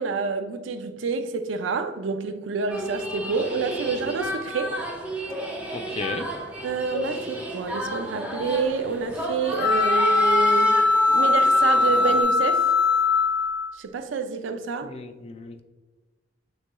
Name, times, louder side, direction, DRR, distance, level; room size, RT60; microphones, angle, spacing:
voice 1, 0.0-4.8 6.6-10.8 11.1-12.7 13.7-14.9, right 4 dB, 85° right, 0.4 m, -28 dB
sound 1, 2.7-12.2, equal, 5° right, 0.7 m, -33 dB
voice 2, 5.7-6.3 14.8-15.6, left 3 dB, 30° left, 0.3 m, -34 dB
sound 2, 9.6-13.7, left 3 dB, 60° left, 0.8 m, -20 dB
6.3 x 3.0 x 2.2 m
head